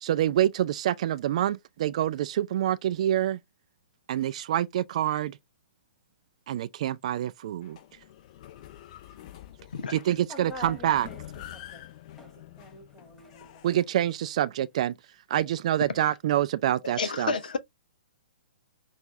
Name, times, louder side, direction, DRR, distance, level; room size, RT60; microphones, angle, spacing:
voice 1, 0.0-3.4 4.1-5.4 6.5-7.8 9.9-11.1 13.6-14.9 15.3-17.3, right 12 dB, 40° right, 0.4 m, -26 dB
sound 1, 7.6-13.8, left 13 dB, 40° left, 1.0 m, -47 dB
voice 2, 10.3-11.3 11.5-11.9 12.2-13.7, left 1 dB, 10° left, 1.9 m, -45 dB
voice 3, 17.0-17.6, left 4 dB, 60° left, 0.8 m, -29 dB
6.1 x 2.6 x 3.2 m
figure-of-eight pair, 120°, 5 cm